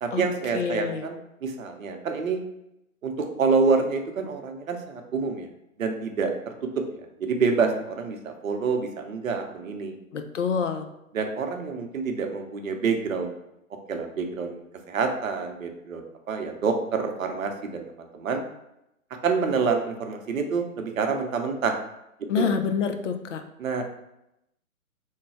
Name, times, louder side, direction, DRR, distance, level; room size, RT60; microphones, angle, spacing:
voice 1, 0.0-2.4 3.0-5.5 5.8-6.8 7.2-9.9 11.1-13.3 13.9-17.8 18.1-18.4 19.2-21.7 22.4-22.5 23.6-23.8, right 5 dB, 70° right, 4 dB, 0.7 m, -27 dB
voice 2, 0.5-1.1 10.1-10.9 22.3-23.4, left 6 dB, 60° left, 7 dB, 0.6 m, -27 dB
3.2 x 2.2 x 4.2 m, 0.85 s
hypercardioid pair, 145°, 42 cm